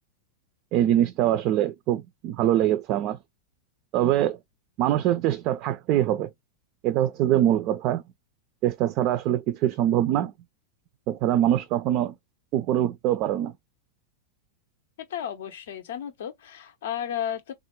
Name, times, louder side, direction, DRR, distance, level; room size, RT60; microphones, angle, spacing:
voice 1, 0.7-3.2 3.9-4.4 4.8-6.3 6.8-8.0 8.6-10.3 11.1-12.1 12.5-13.5, right 12 dB, 40° right, 0.3 m, -23 dB
voice 2, 15.1-17.5, left 9 dB, 60° left, 0.5 m, -33 dB
3.5 x 2.1 x 2.9 m
figure-of-eight pair, 90°, 0 cm